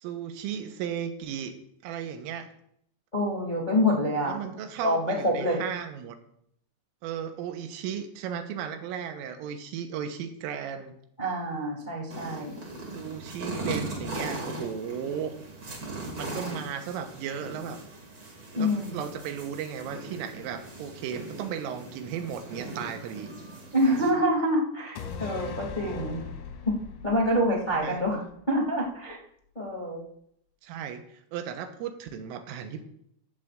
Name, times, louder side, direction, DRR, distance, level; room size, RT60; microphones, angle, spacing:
voice 1, 0.0-1.6 1.8-2.5 4.3-6.2 7.0-10.9 13.0-15.4 16.2-17.8 18.6-23.3 27.7-28.0 30.6-32.8, right 8 dB, 85° right, 7 dB, 3.5 m, -35 dB
voice 2, 3.1-4.3 4.8-5.6 11.2-12.5 18.5-19.0 23.7-26.2 27.0-28.2 28.5-29.2 29.5-30.0, equal, 70° left, -2 dB, 0.4 m, -26 dB
sound 1, 12.1-24.1, right 2 dB, 35° right, 1.8 m, -39 dB
sound 2, 25.0-28.5 28.9-29.0, left 5 dB, 90° left, 4.1 m, -40 dB
15.5 x 13.5 x 2.5 m, 0.71 s
omnidirectional pair, 5.8 m